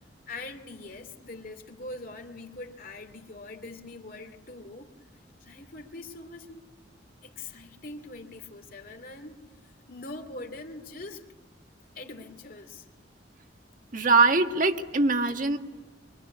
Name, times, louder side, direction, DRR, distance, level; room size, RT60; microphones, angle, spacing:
voice 1, 0.3-4.9 5.4-6.7 7.2-9.4 9.9-11.2 11.9-12.9, left 2 dB, 50° left, 6 dB, 2.6 m, -42 dB
voice 2, 13.9-15.6, right 3 dB, 45° right, 6 dB, 1.6 m, -22 dB
25.0 x 23.5 x 9.8 m, 1.3 s
head